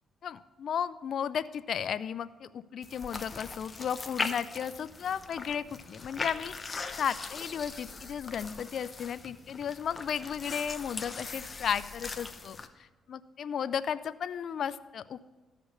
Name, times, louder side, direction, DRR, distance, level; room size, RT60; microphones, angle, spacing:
voice 1, 0.2-12.6 13.1-15.2, left 8 dB, 60° left, 15 dB, 0.4 m, -34 dB
sound 1, 2.8-12.7, left 4 dB, 30° left, 0.7 m, -40 dB
13.5 x 5.1 x 6.5 m, 1.2 s
cardioid pair, 90°, 0 cm